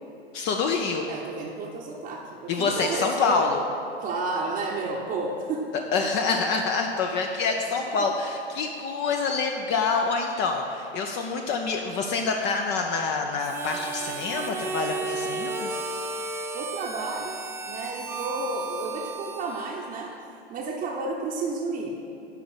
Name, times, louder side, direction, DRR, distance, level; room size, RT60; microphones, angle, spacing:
voice 1, 0.3-1.1 2.5-3.6 5.9-15.7, left 4 dB, 35° left, 3 dB, 0.6 m, -26 dB
voice 2, 1.1-3.5 4.0-5.7 8.0-8.1 16.5-20.1 20.5-22.0, right 3 dB, 30° right, -3 dB, 0.9 m, -32 dB
Harmonica, 13.4-20.3, right 3 dB, 10° right, 0.3 m, -34 dB
11.0 x 3.9 x 7.2 m, 2.6 s
hypercardioid pair, 110°, 32 cm